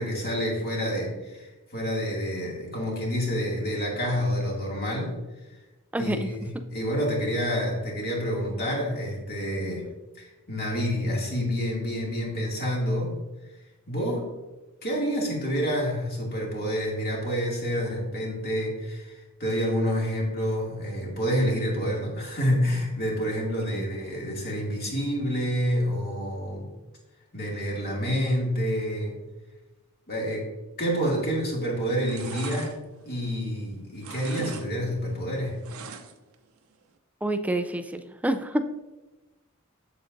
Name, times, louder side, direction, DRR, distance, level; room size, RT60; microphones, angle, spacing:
voice 1, 0.0-5.2 6.0-9.9 10.2-13.2 13.9-14.3 14.8-26.7 27.3-29.2 30.1-30.5 30.8-32.8 33.1-35.6, equal, 50° left, -3 dB, 2.3 m, -28 dB
voice 2, 5.9-6.3 23.7-23.8 37.2-38.6, right 1 dB, 5° right, 9 dB, 0.4 m, -28 dB
sound 1, 31.2-31.6 31.9-33.6 33.9-34.7 34.9-36.3 36.7-36.8, right 5 dB, 80° right, 0.7 m, -41 dB
8.1 x 7.6 x 2.6 m, 1.1 s
head